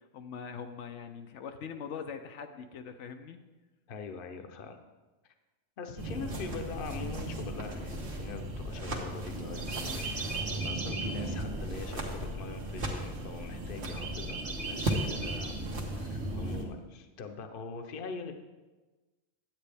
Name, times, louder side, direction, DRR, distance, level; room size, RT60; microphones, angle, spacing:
voice 1, 0.1-3.4, left 6 dB, 85° left, 7 dB, 1.0 m, -42 dB
voice 2, 3.9-4.8 5.8-10.1 10.6-15.6 15.8-18.3, left 5 dB, 55° left, 6 dB, 0.9 m, -43 dB
sound 1, 6.0-16.6, right 1 dB, 70° right, 1.4 m, -35 dB
10.5 x 8.4 x 3.4 m, 1.2 s
omnidirectional pair, 1.2 m